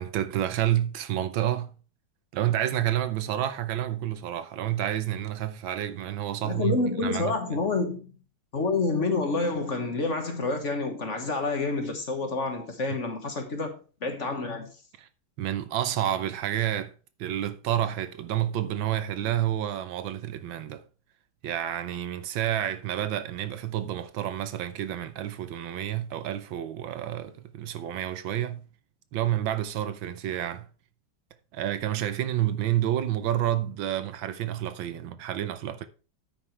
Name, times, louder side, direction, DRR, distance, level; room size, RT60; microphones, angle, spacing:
voice 1, 0.0-1.7 2.3-7.6 15.0-15.1 15.4-16.9 17.2-20.8 21.4-28.7 29.1-30.7 31.5-35.8, right 12 dB, 80° right, 1.6 m, -29 dB
voice 2, 6.4-8.1 8.5-14.7, left 3 dB, 40° left, 1.6 m, -28 dB
9.4 x 8.7 x 3.2 m
omnidirectional pair, 2.1 m